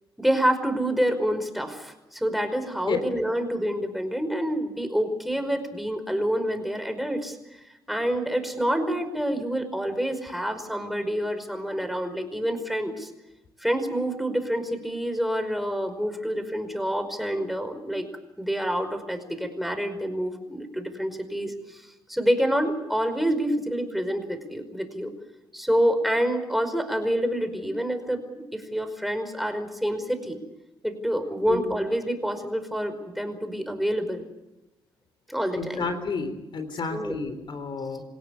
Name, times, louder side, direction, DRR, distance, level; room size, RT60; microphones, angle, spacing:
voice 1, 0.2-13.1 13.6-18.1 18.4-25.1 25.5-30.4 30.8-34.3 35.3-35.9 36.9-37.2, equal, ahead, 7 dB, 5.1 m, -27 dB
voice 2, 35.6-38.0, left 4 dB, 55° left, 9 dB, 3.9 m, -31 dB
27.5 x 17.5 x 8.5 m, 0.94 s
cardioid pair, 75°, 10 cm